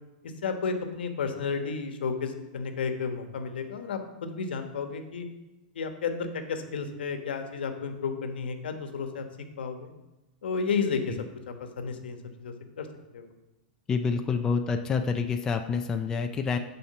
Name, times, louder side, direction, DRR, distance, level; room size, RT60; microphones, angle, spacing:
voice 1, 0.4-5.3 5.7-9.2 9.6-9.9 10.4-11.2 11.8-12.9 13.1-13.3, left 5 dB, 85° left, 6 dB, 1.1 m, -32 dB
voice 2, 13.9-16.6, left 5 dB, 10° left, 5 dB, 0.4 m, -27 dB
7.1 x 4.4 x 6.6 m, 1.0 s
supercardioid pair, 165°, 5 cm